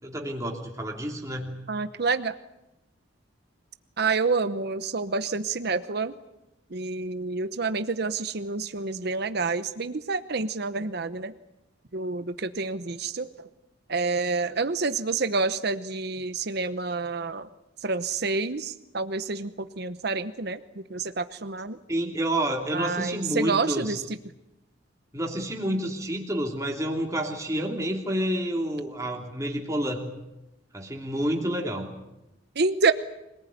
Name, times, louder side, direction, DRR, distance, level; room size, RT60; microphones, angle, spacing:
voice 1, 0.0-1.5 21.9-23.9 25.1-30.1 30.7-31.9, right 1 dB, 15° right, 0 dB, 3.0 m, -29 dB
voice 2, 1.7-2.4 4.0-6.1 6.7-11.3 11.9-13.5 13.9-17.5 17.8-21.8 22.7-24.0 32.6-32.9, right 4 dB, 55° right, 12 dB, 0.9 m, -28 dB
25.5 x 19.0 x 9.3 m, 0.93 s
head